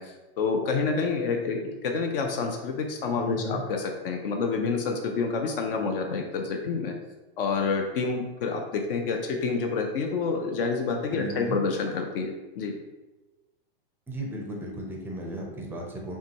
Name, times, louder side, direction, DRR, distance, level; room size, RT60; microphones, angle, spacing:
voice 1, 0.0-6.9 7.4-12.7, left 4 dB, 65° left, 3 dB, 0.6 m, -28 dB
voice 2, 3.2-3.7 11.1-11.6 14.1-16.2, right 1 dB, 5° right, 0 dB, 0.5 m, -35 dB
5.6 x 2.3 x 2.9 m, 1.1 s
supercardioid pair, 145°, 30 cm